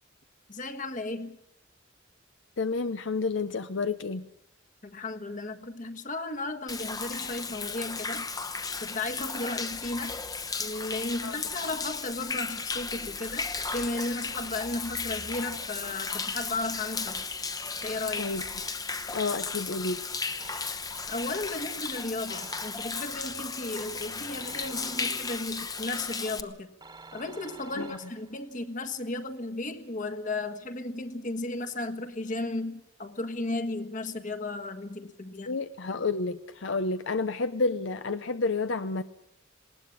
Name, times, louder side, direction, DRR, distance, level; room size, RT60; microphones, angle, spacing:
voice 1, 0.5-1.4 4.8-8.3 8.8-10.2 10.6-17.3 17.8-18.3 21.1-26.7 27.1-35.6, left 2 dB, 40° left, 1.5 m, -35 dB
voice 2, 2.6-4.3 11.2-11.4 18.2-18.4 19.1-20.1 27.8-28.0 35.5-39.0, left 3 dB, 70° left, 0.7 m, -30 dB
Human voice / Rain / Stream, 6.7-26.4, left 4 dB, 20° left, 1.0 m, -35 dB
sound 1, 20.4-21.1 22.3-23.2 24.4-25.6 26.8-28.5, right 3 dB, 25° right, 1.6 m, -50 dB
20.0 x 18.5 x 8.6 m
head